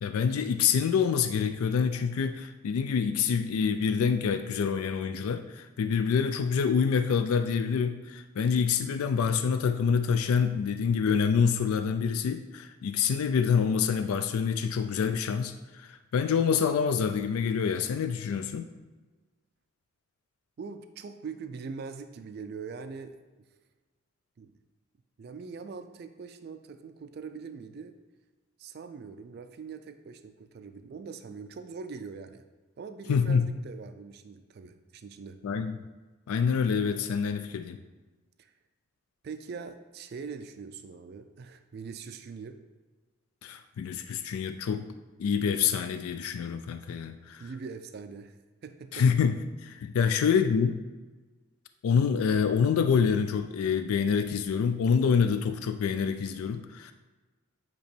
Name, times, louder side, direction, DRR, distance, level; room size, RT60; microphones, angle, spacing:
voice 1, 0.0-18.7 33.1-33.5 35.4-35.8 36.3-37.8 43.4-44.8 45.2-47.4 48.9-49.4 49.6-50.8 51.8-56.9, left 6 dB, 85° left, 9 dB, 0.3 m, -26 dB
voice 2, 20.6-23.1 24.4-24.6 25.2-27.9 28.6-32.4 32.8-35.4 38.4-38.5 39.2-42.6 47.4-49.0 50.0-50.1, right 5 dB, 50° right, 9 dB, 0.3 m, -42 dB
8.2 x 2.9 x 4.4 m, 1.3 s
head